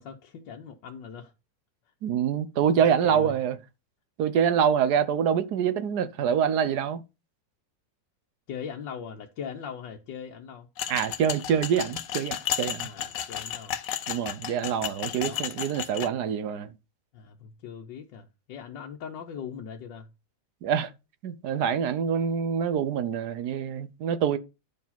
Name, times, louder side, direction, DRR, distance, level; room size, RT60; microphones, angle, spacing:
voice 1, 0.0-1.3 2.7-3.3 8.5-10.7 12.8-13.8 15.1-15.4 17.1-20.1, left 7 dB, 90° left, 1.6 m, -40 dB
voice 2, 2.0-3.6 4.2-7.0 10.9-12.9 14.1-16.7 20.6-20.9 21.2-24.4, right 8 dB, 65° right, 1.3 m, -25 dB
sound 1, 10.8-16.1, left 9 dB, 60° left, 1.1 m, -33 dB
10.5 x 4.7 x 5.7 m
omnidirectional pair, 1.9 m